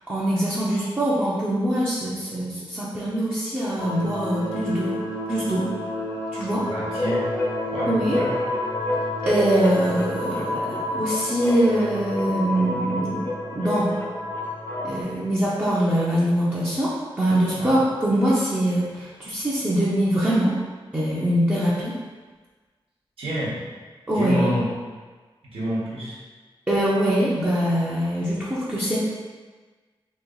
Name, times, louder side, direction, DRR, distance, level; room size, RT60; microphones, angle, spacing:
voice 1, 0.1-4.9 5.3-5.7 6.3-6.6 7.9-8.2 9.2-13.3 13.5-13.9 14.8-16.9 17.2-20.5 20.9-22.0 24.1-24.5 26.7-29.0, right 1 dB, 20° right, -9 dB, 0.6 m, -23 dB
sound 1, 3.8-15.0, left 1 dB, 45° left, 0.7 m, -31 dB
voice 2, 6.7-7.2 7.6-8.3 17.5-17.7 23.2-23.5 24.1-24.7 25.5-26.2, equal, 80° right, -8 dB, 1.1 m, -28 dB
sound 2, 7.0-15.2, left 2 dB, 20° left, 0.3 m, -31 dB
3.0 x 2.9 x 3.9 m, 1.4 s
wide cardioid pair, 135°, 9 cm